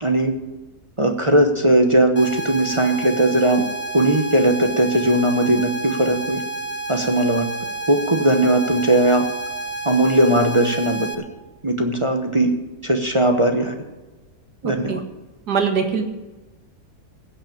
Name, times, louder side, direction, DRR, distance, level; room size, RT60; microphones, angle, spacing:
voice 1, 0.0-0.3 1.0-3.6 3.9-6.4 6.9-7.5 7.9-9.3 9.8-11.1 11.6-12.5 12.8-13.7 14.6-15.0, right 1 dB, 25° right, 4 dB, 0.9 m, -18 dB
sound 1, 2.2-11.2, right 2 dB, 10° left, 0.7 m, -30 dB
voice 2, 14.6-15.0 15.5-16.1, right 6 dB, 85° right, 5 dB, 2.2 m, -22 dB
16.0 x 6.2 x 8.7 m, 1.1 s
omnidirectional pair, 1.7 m